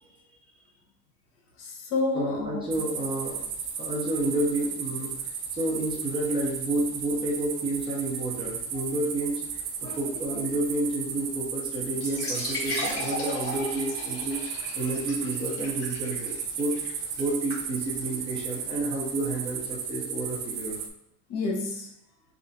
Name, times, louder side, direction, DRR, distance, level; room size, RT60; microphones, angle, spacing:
voice 1, 1.6-2.7 8.7-8.8 9.8-10.5 21.3-21.9, left 3 dB, 60° left, 1 dB, 1.0 m, -31 dB
voice 2, 2.1-3.4 3.8-5.2 5.5-14.4 14.7-16.8 17.2-20.8, right 2 dB, 15° right, -5 dB, 0.5 m, -30 dB
sound 1, 2.7-20.9, right 6 dB, 85° right, 0.6 m, -34 dB
sound 2, 11.9-19.5, left 2 dB, 30° left, 1.4 m, -37 dB
3.3 x 2.5 x 3.9 m, 0.78 s
cardioid pair, 175°, 33 cm